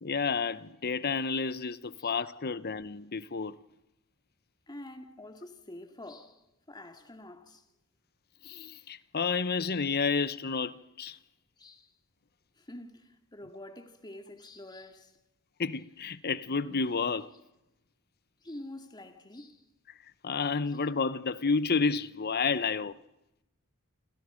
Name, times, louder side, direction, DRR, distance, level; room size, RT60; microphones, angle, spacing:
voice 1, 0.0-3.6 8.4-11.2 15.6-17.3 20.2-23.0, left 5 dB, 45° left, 0.9 m, -30 dB
voice 2, 4.7-7.6 11.6-11.9 12.6-15.2 18.4-19.7 20.7-20.8, left 1 dB, 20° left, 2.3 m, -47 dB
28.5 x 28.0 x 5.2 m
head